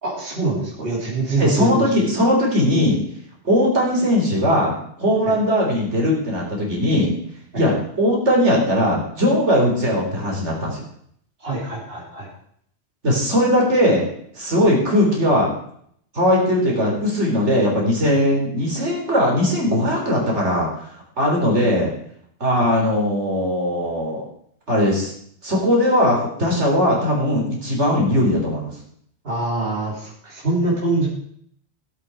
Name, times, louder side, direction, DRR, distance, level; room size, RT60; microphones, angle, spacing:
voice 1, 0.0-1.9 5.3-5.4 7.5-7.6 11.4-12.3 22.6-22.7 29.2-31.1, right 2 dB, 55° right, -4 dB, 3.5 m, -24 dB
voice 2, 1.4-3.0 3.4-4.7 5.0-7.2 7.5-10.8 13.0-14.0 14.3-15.5 16.1-20.7 21.2-21.9 22.4-24.2 24.7-25.1 25.4-28.7 30.6-30.7, equal, 80° right, -2 dB, 4.3 m, -19 dB
16.5 x 8.5 x 4.8 m, 0.65 s
omnidirectional pair, 1.2 m